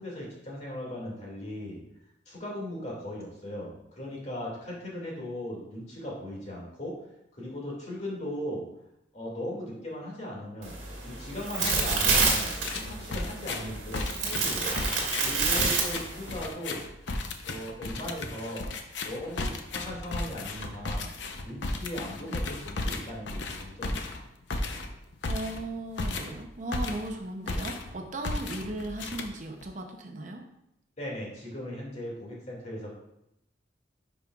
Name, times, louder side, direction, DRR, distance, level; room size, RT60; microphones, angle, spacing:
voice 1, 0.0-1.8 2.3-7.0 7.3-8.6 9.1-10.8 11.0-14.8 15.2-16.8 17.5-18.7 19.0-21.1 21.4-24.2 31.0-32.9, equal, 35° left, -3 dB, 2.2 m, -38 dB
sound 1, 10.6-16.5, right 4 dB, 65° right, 1.9 m, -28 dB
sound 2, 11.5-11.9 12.2-27.2 27.5-27.9 28.2-29.7, left 2 dB, 70° left, 0.7 m, -34 dB
voice 2, 25.3-30.5, right 1 dB, 40° right, 3 dB, 0.6 m, -37 dB
10.5 x 5.2 x 2.4 m, 0.83 s
head